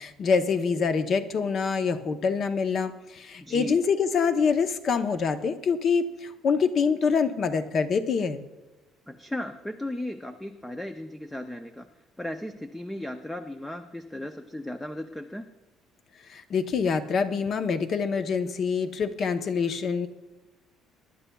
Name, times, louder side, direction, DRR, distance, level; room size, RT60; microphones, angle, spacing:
voice 1, 0.0-8.4 16.3-20.1, left 5 dB, 40° left, 9 dB, 0.7 m, -25 dB
voice 2, 3.4-3.8 9.1-11.9 12.2-15.5, left 1 dB, 5° left, 7 dB, 0.4 m, -36 dB
23.0 x 11.0 x 2.3 m, 1.1 s
cardioid pair, 160°, 0 cm